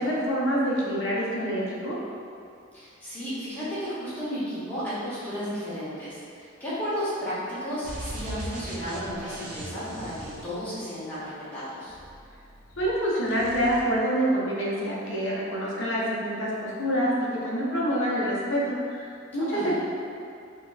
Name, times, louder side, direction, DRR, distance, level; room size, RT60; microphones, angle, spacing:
voice 1, 0.0-2.0 12.8-19.7, equal, 75° left, -5 dB, 0.7 m, -26 dB
voice 2, 2.7-12.0 19.4-19.7, equal, 10° left, -13 dB, 0.9 m, -33 dB
sound 1, 7.8-11.1 11.9-12.9 13.2-13.8, right 1 dB, 45° right, 0.4 m, -39 dB
4.0 x 2.1 x 2.5 m, 2.4 s
head